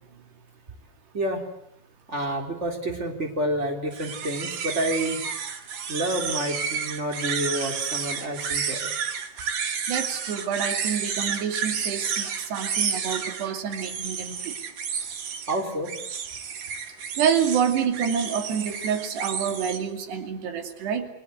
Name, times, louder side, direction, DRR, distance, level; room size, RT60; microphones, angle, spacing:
voice 1, 1.1-1.4 2.1-5.2 5.9-8.9 15.5-15.9, right 1 dB, 15° right, 3 dB, 3.6 m, -29 dB
sound 1, 3.9-19.8, right 7 dB, 55° right, 3.0 m, -31 dB
voice 2, 9.9-14.5 17.2-21.1, right 7 dB, 85° right, 6 dB, 4.7 m, -27 dB
29.0 x 21.5 x 8.2 m, 0.72 s
omnidirectional pair, 4.7 m